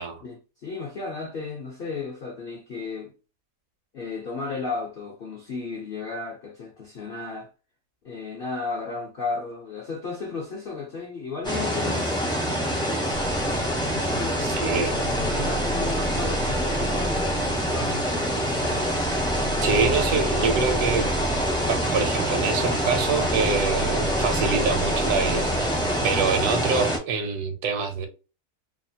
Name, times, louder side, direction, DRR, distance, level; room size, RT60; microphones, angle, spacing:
voice 1, 0.2-3.1 3.9-7.5 8.0-13.2 13.9-18.5, left 4 dB, 65° left, 0.5 m, -34 dB
sound 1, 11.4-27.0, equal, 5° left, 0.4 m, -25 dB
sound 2, 13.1-26.6, right 2 dB, 60° right, 0.8 m, -34 dB
voice 2, 14.6-15.1 19.6-21.1 21.7-28.1, right 5 dB, 75° right, 1.2 m, -26 dB
2.9 x 2.3 x 2.7 m
omnidirectional pair, 1.8 m